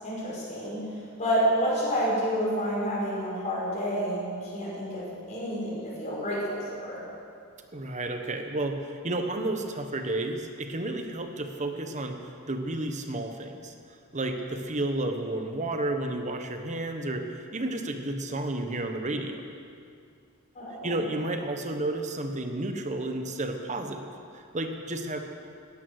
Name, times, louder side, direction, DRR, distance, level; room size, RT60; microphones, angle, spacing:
voice 1, 0.0-7.0 20.5-21.0, equal, 35° left, -7 dB, 5.3 m, -29 dB
voice 2, 7.7-12.2 12.5-13.7 14.1-19.4 20.8-25.2, right 2 dB, 35° right, 5 dB, 1.1 m, -31 dB
17.0 x 13.0 x 6.4 m, 2.3 s
head